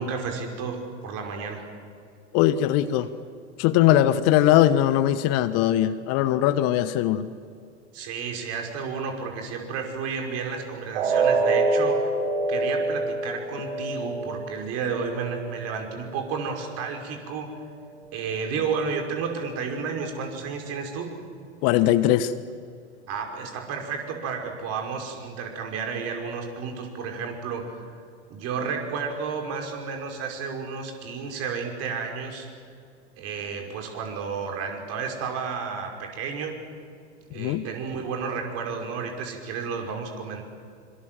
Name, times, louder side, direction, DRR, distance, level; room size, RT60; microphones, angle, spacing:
voice 1, 0.0-1.7 7.9-12.1 12.5-17.5 18.1-21.1 23.1-27.7 28.3-32.5 33.2-36.6 37.3-40.4, right 5 dB, 45° right, 3 dB, 5.4 m, -32 dB
voice 2, 2.3-3.1 3.6-7.3 21.6-22.3 37.3-37.6, left 12 dB, 45° left, 14 dB, 1.2 m, -20 dB
sound 1, 10.9-16.9 17.3-17.5 18.0-18.1, right 3 dB, 65° right, 6.7 m, -27 dB
25.5 x 24.5 x 7.7 m, 2.2 s
hypercardioid pair, 95°, 35 cm